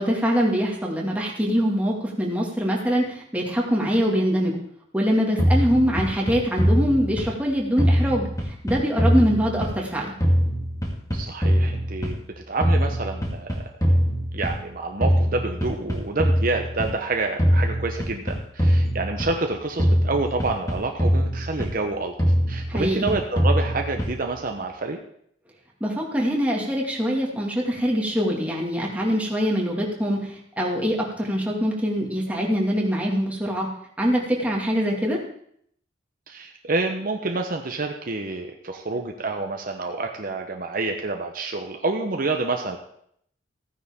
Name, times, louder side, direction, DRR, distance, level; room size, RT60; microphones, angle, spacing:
voice 1, 0.0-4.6 4.9-8.3 8.6-10.1 22.7-23.1 25.8-33.7 34.0-35.2, equal, 10° right, -2 dB, 2.2 m, -23 dB
sound 1, 5.4-7.5 7.8-9.9 10.2-12.3 12.6-14.7 15.0-17.0 17.4-19.5 19.8-21.9 22.2-24.3, equal, 20° left, 2.0 m, -22 dB
voice 2, 11.1-13.7 14.3-22.1 22.5-25.0 36.3-42.8, right 3 dB, 50° right, 3 dB, 0.9 m, -28 dB
15.0 x 9.7 x 3.7 m, 0.67 s
head